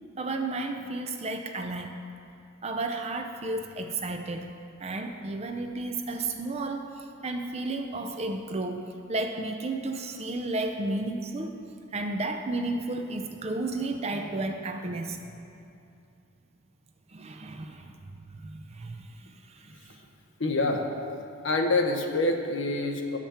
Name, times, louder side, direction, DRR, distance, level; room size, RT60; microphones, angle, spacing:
voice 1, 0.2-2.0 2.6-4.5 4.8-11.6 11.9-15.2 17.1-20.0, right 2 dB, 30° right, 5 dB, 0.5 m, -33 dB
voice 2, 20.4-20.9 21.4-23.2, left 2 dB, 60° left, 3 dB, 0.8 m, -26 dB
10.5 x 7.4 x 4.3 m, 2.6 s
head